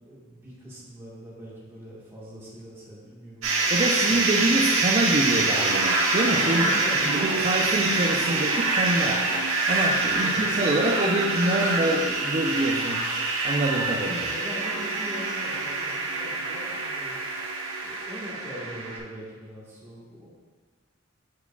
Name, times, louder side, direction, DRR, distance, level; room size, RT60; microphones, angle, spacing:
voice 1, 0.0-4.3 6.5-7.0 10.1-10.5 14.2-17.2 17.8-20.3, equal, 10° right, -7 dB, 1.5 m, -41 dB
sound 1, 3.4-19.0, right 3 dB, 75° right, 1.1 m, -25 dB
voice 2, 3.7-6.7 7.1-14.3, right 1 dB, 35° right, -3 dB, 0.4 m, -26 dB
9.2 x 4.5 x 2.3 m, 1.5 s
head